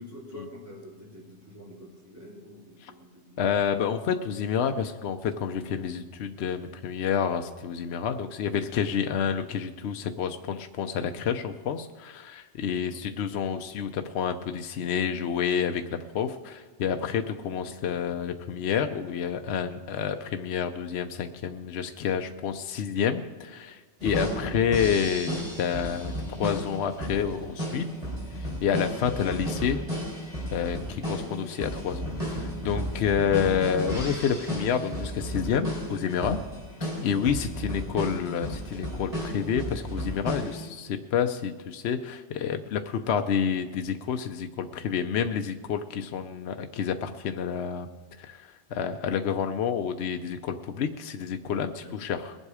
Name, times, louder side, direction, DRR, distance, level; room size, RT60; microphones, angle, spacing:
voice 1, 0.0-3.4 12.7-13.0 24.5-24.6 51.7-52.0, left 1 dB, 15° right, -6 dB, 3.9 m, -46 dB
voice 2, 3.4-27.9 28.3-29.9 30.5-36.4 36.8-47.9 48.2-52.4, left 7 dB, 70° left, 7 dB, 0.9 m, -29 dB
sound 1, 24.0-40.6, equal, 30° right, 3.9 m, -34 dB
21.0 x 8.0 x 4.8 m, 1.4 s
omnidirectional pair, 1.2 m